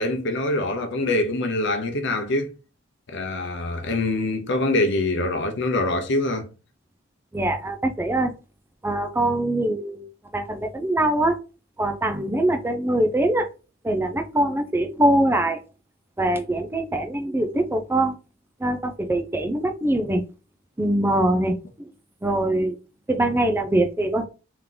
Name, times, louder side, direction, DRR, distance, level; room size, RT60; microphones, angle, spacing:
voice 1, 0.0-2.5 3.1-6.5, left 2 dB, 60° left, 0.8 m, -24 dB
voice 2, 7.3-8.3 8.8-10.1 10.3-11.4 11.8-13.5 13.8-15.6 16.2-18.2 18.6-20.2 20.8-21.9 22.2-22.8 23.1-24.2, right 1 dB, 10° right, 0.4 m, -23 dB
3.7 x 3.0 x 3.7 m
head